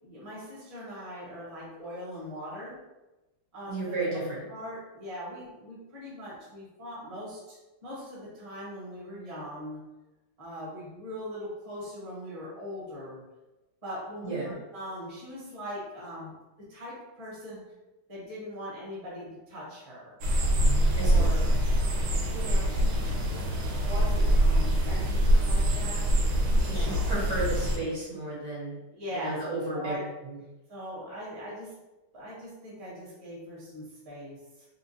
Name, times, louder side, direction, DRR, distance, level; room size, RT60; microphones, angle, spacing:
voice 1, 0.0-2.7 3.5-4.0 4.5-9.8 10.4-13.2 13.8-16.3 16.7-17.6 18.1-20.2 21.0-21.5 22.2-26.2 26.7-27.1 28.9-29.4 29.7-30.0 30.7-31.7 32.1-34.7, equal, 25° right, -7 dB, 0.9 m, -41 dB
voice 2, 3.7-4.4 14.2-14.5 20.9-21.3 26.6-28.8 29.1-30.0 30.2-30.4, right 2 dB, 60° right, -7 dB, 1.4 m, -33 dB
sound 1, 20.2-27.8, equal, 75° right, 1.4 m, -24 dB
3.7 x 2.4 x 2.6 m, 1.0 s
omnidirectional pair, 2.3 m